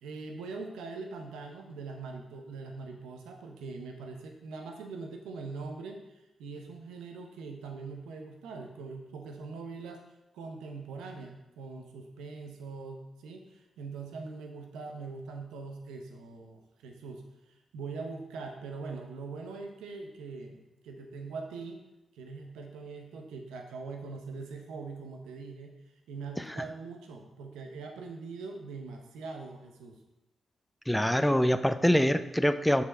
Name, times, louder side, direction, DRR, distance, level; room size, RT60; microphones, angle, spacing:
voice 1, 0.0-10.0 10.3-17.2 17.7-21.8 22.1-25.8 26.1-30.0, right 4 dB, 85° right, 3 dB, 0.9 m, -42 dB
voice 2, 30.9-32.8, equal, 5° left, 11 dB, 0.5 m, -24 dB
6.3 x 5.8 x 4.3 m, 0.97 s
supercardioid pair, 45°, 0 cm